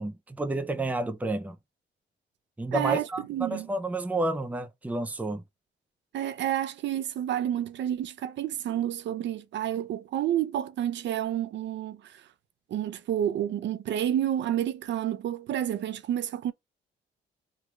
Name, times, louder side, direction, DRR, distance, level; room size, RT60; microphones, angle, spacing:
voice 1, 0.0-1.6 2.6-5.4, right 2 dB, 5° right, 0.5 m, -30 dB
voice 2, 2.7-3.7 6.1-12.2 12.7-16.5, right 11 dB, 65° right, 0.6 m, -30 dB
3.2 x 2.3 x 3.2 m
cardioid pair, 90°, 20 cm